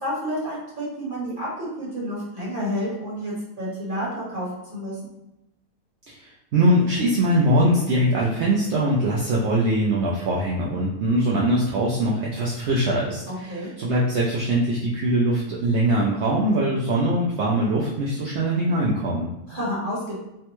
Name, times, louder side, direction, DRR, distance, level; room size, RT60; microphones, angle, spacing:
voice 1, 0.0-5.0 13.3-13.7 19.5-20.2, equal, 35° right, -7 dB, 1.1 m, -30 dB
voice 2, 6.1-19.3, right 1 dB, 70° right, -5 dB, 0.6 m, -22 dB
3.4 x 2.1 x 2.9 m, 0.90 s
omnidirectional pair, 1.7 m